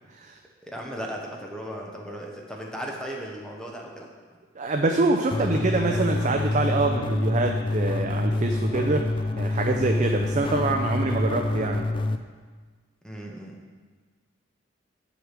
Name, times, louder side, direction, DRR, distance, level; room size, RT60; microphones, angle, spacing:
voice 1, 0.6-4.1 5.5-6.0 13.0-13.5, equal, 5° left, -1 dB, 0.8 m, -36 dB
voice 2, 4.6-11.9, right 3 dB, 40° right, 3 dB, 0.4 m, -25 dB
sound 1, 5.3-12.2, left 2 dB, 25° left, 0.3 m, -27 dB
7.8 x 4.8 x 6.6 m, 1.5 s
head